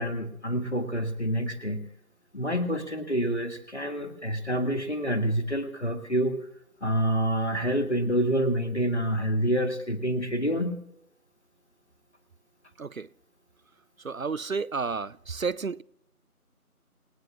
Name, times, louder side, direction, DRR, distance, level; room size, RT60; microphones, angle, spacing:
voice 1, 0.0-1.8 2.3-6.4 6.8-10.8, equal, 50° left, 2.1 m, -27 dB
voice 2, 14.0-15.8, right 5 dB, 65° right, 0.5 m, -31 dB
28.0 x 19.0 x 2.4 m
figure-of-eight pair, 180°, 45 cm